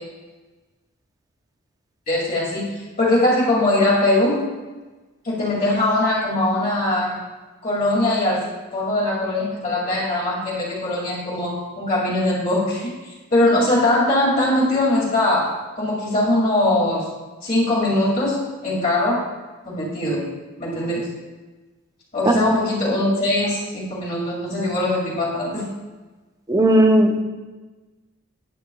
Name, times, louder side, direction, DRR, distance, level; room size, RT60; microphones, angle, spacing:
voice 1, 2.1-2.6 3.0-4.4 5.2-7.2 7.6-12.9 13.3-17.1 17.4-19.3 19.6-20.2 20.6-21.1 22.1-25.7, left 1 dB, 35° left, -7 dB, 2.2 m, -21 dB
voice 2, 26.5-27.2, right 1 dB, 15° right, 4 dB, 0.6 m, -16 dB
11.0 x 8.4 x 2.3 m, 1.2 s
head